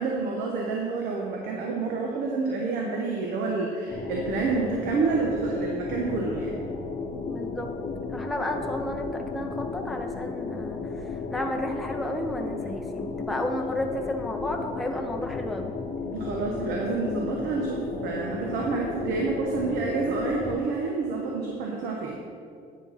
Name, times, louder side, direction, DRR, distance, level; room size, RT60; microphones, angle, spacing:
voice 1, 0.0-6.6 16.1-22.2, right 4 dB, 85° right, 0 dB, 1.0 m, -28 dB
sound 1, 3.9-20.6, left 4 dB, 45° left, 0.8 m, -34 dB
voice 2, 7.3-7.8 8.1-15.7, left 1 dB, ahead, 2 dB, 0.6 m, -32 dB
9.1 x 4.7 x 5.6 m, 2.3 s
cardioid pair, 110°, 17 cm